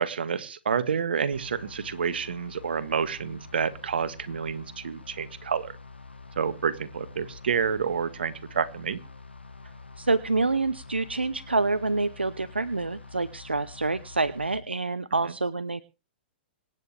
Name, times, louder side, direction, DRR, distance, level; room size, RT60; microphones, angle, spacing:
voice 1, 0.0-5.8 6.3-9.0, right 6 dB, 70° right, 13 dB, 1.5 m, -29 dB
sound 1, 1.3-14.6, left 3 dB, 90° left, 1.4 m, -46 dB
voice 2, 10.0-15.8, right 3 dB, 90° right, 15 dB, 0.7 m, -27 dB
26.0 x 9.2 x 3.4 m, 0.32 s
figure-of-eight pair, 115°, 6 cm